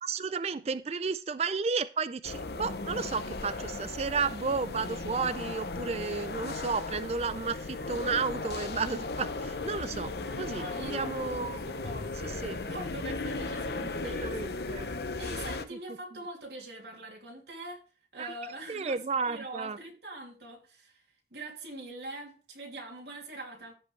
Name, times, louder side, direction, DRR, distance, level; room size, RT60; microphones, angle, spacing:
voice 1, 0.0-11.6 12.4-12.6 14.0-14.9 18.2-18.3 18.7-19.8, right 5 dB, 35° right, 0.4 m, -32 dB
sound 1, 2.2-15.6, left 3 dB, 65° left, 0.8 m, -36 dB
voice 2, 10.5-11.1 11.6-14.4 14.7-14.9 15.2-17.8 18.1-19.0 19.2-21.0 21.3-23.7, right 2 dB, 75° right, 2.8 m, -43 dB
15.5 x 5.3 x 3.3 m
head